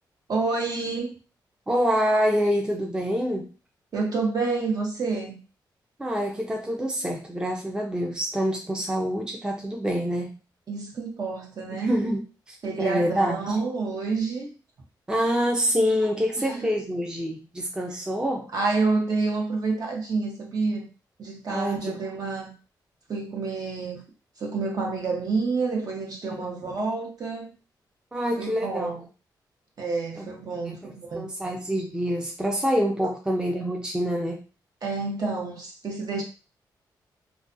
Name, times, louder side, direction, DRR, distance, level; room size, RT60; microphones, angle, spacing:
voice 1, 0.3-1.1 3.9-5.4 10.7-11.9 12.6-14.5 16.4-16.7 18.5-20.9 21.2-22.5 23.1-24.0 24.4-27.5 28.4-29.0 29.8-31.3 34.8-36.2, right 4 dB, 55° right, 0.9 m, -28 dB
voice 2, 1.7-3.5 6.0-10.4 11.8-12.2 12.5-13.5 15.1-18.5 21.5-22.0 26.4-26.7 28.1-29.1 30.2-30.3 30.6-34.4, equal, 10° right, 0.5 m, -26 dB
2.4 x 2.3 x 2.5 m
cardioid pair, 80°, 8 cm